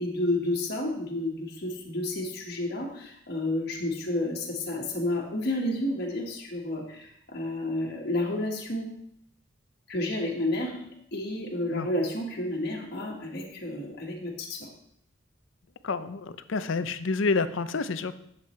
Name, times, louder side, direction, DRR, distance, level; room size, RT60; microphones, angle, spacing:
voice 1, 0.0-8.9 9.9-10.8 11.1-14.7, left 1 dB, 50° left, -1 dB, 1.5 m, -31 dB
voice 2, 15.8-18.1, left 4 dB, 70° left, 12 dB, 0.5 m, -28 dB
11.0 x 7.4 x 3.2 m, 0.72 s
head